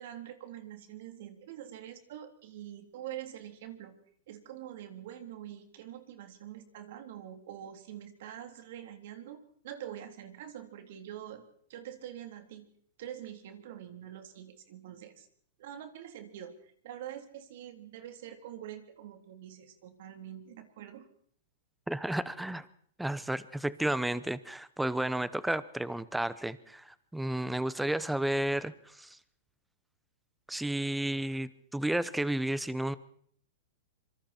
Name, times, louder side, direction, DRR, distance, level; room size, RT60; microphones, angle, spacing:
voice 1, 0.0-4.0 4.3-11.4 11.7-12.7 13.0-15.3 15.6-21.1, right 11 dB, 60° right, 6 dB, 3.5 m, -45 dB
voice 2, 21.9-22.7 23.0-29.2 30.5-33.0, right 1 dB, 5° right, 16 dB, 0.9 m, -32 dB
25.5 x 24.0 x 4.5 m, 0.63 s
hypercardioid pair, 140°, 0 cm